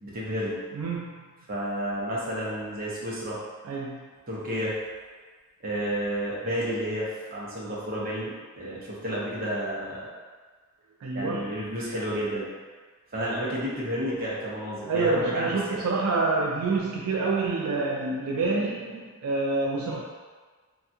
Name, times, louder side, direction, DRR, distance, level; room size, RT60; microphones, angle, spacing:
voice 1, 0.0-0.6 1.5-3.4 4.3-4.7 5.6-10.1 11.1-12.5 13.1-15.8, equal, 40° right, -6 dB, 0.8 m, -31 dB
voice 2, 0.7-1.3 3.6-4.0 11.0-11.5 14.8-20.0, right 3 dB, 75° right, -2 dB, 0.3 m, -27 dB
3.4 x 2.3 x 2.7 m, 1.4 s
head